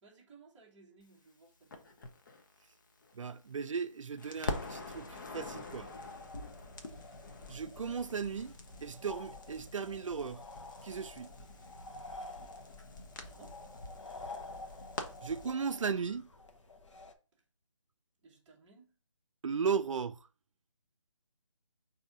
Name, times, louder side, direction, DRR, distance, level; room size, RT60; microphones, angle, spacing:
voice 1, 0.0-2.0 13.2-13.6 17.3-17.4 18.2-18.9, right 4 dB, 10° right, 0.8 m, -60 dB
Crackle, 1.7-3.9 4.2-15.5, left 2 dB, 40° left, 0.7 m, -45 dB
voice 2, 3.1-5.9 7.5-8.5 8.8-10.4 10.8-11.3 15.2-16.3 19.4-20.3, right 6 dB, 70° right, 0.4 m, -36 dB
sound 1, 5.8-17.1, left 2 dB, 65° left, 1.0 m, -50 dB
3.9 x 2.7 x 4.8 m
figure-of-eight pair, 160°, 17 cm